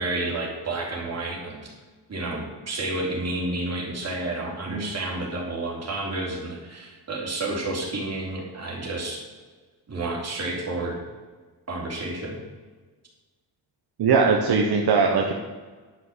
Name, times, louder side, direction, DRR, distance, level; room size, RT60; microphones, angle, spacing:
voice 1, 0.0-1.6 2.1-9.2 9.9-11.0 11.7-12.4, right 2 dB, 40° right, -2 dB, 3.4 m, -30 dB
voice 2, 14.0-15.3, right 5 dB, 65° right, 2 dB, 1.2 m, -20 dB
10.5 x 6.5 x 7.3 m, 1.4 s
wide cardioid pair, 140°, 41 cm